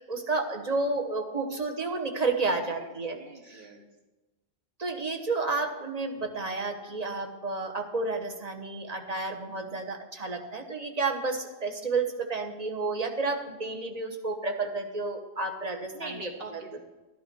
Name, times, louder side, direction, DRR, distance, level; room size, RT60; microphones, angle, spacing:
voice 1, 0.1-3.2 3.5-3.6 4.8-15.9, right 3 dB, 40° right, 4 dB, 1.3 m, -31 dB
voice 2, 2.7-3.9 13.6-13.7 15.9-16.8, right 3 dB, 70° right, 3 dB, 1.3 m, -44 dB
12.5 x 11.0 x 4.5 m, 1.1 s
omnidirectional pair, 1.0 m